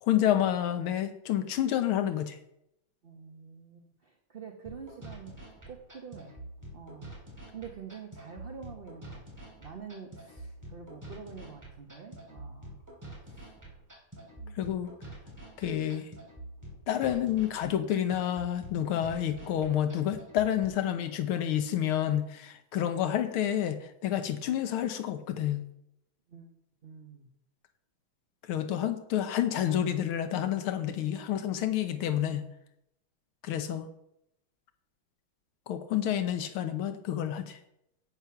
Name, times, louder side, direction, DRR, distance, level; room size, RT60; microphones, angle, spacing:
voice 1, 0.0-2.4 14.6-14.9 15.6-16.1 16.9-25.7 28.5-32.5 33.4-33.9 35.7-37.6, left 10 dB, 90° left, 9 dB, 1.8 m, -29 dB
voice 2, 3.0-5.3 5.7-6.4 6.7-7.2 7.5-12.8 13.2-13.5 14.4-14.6 26.3-26.5 26.8-27.3 33.7-33.9, right 6 dB, 35° right, 3 dB, 0.9 m, -47 dB
sound 1, 4.6-20.6, right 1 dB, 10° right, 3.2 m, -47 dB
9.4 x 9.0 x 5.9 m, 0.79 s
omnidirectional pair, 2.3 m